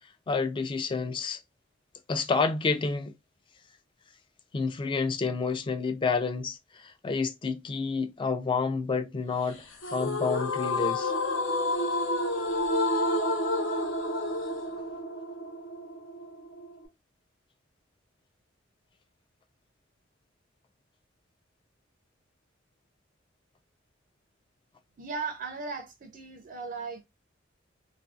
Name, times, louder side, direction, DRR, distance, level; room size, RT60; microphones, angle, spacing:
voice 1, 0.3-1.4 2.1-3.1 4.5-9.6 9.9-11.1, left 4 dB, 25° left, 0.3 m, -29 dB
sound 1, 9.8-16.9, left 1 dB, 70° left, 0.6 m, -30 dB
voice 2, 25.0-27.0, right 4 dB, 45° right, 0.4 m, -37 dB
2.6 x 2.2 x 2.3 m
head